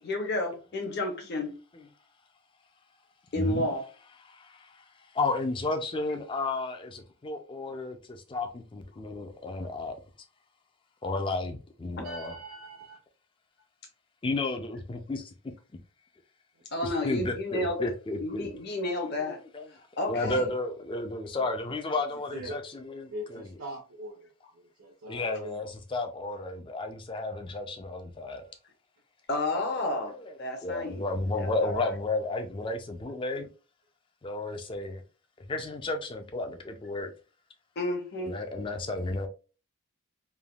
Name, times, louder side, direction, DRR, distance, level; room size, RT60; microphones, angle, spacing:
voice 1, 0.0-1.6 3.3-3.8 12.0-12.1 16.7-17.9 18.2-19.4 20.0-20.4 29.3-31.0 31.3-31.9 37.8-38.3, left 1 dB, 50° left, 0.7 m, -31 dB
voice 2, 3.4-3.7 4.3-4.8 5.1-10.0 11.0-12.3 14.2-15.3 16.8-18.5 19.2-19.7 20.1-23.5 25.1-28.4 29.7-30.4 30.6-33.5 34.2-35.0 35.4-37.1 38.2-39.3, left 2 dB, 25° left, 0.3 m, -33 dB
voice 3, 12.0-13.0 16.6-16.9 20.1-20.5 21.3-21.7 22.1-22.5 23.1-25.7, right 1 dB, 85° right, 0.8 m, -43 dB
3.3 x 2.2 x 2.3 m
head